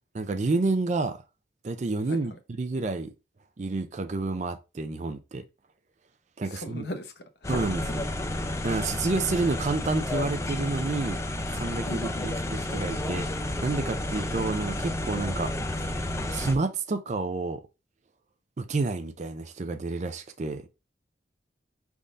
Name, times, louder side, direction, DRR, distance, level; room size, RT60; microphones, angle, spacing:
voice 1, 0.1-1.2 1.6-3.1 3.6-5.4 6.4-6.9 7.5-8.0 8.6-11.2 11.5-15.5 15.8-17.6 18.6-20.6, right 3 dB, 40° right, 0.4 m, -30 dB
voice 2, 6.5-7.8 11.9-12.3, left 1 dB, 65° left, 0.7 m, -39 dB
sound 1, 7.4-16.6, left 1 dB, 15° left, 0.4 m, -31 dB
5.3 x 3.5 x 2.5 m
head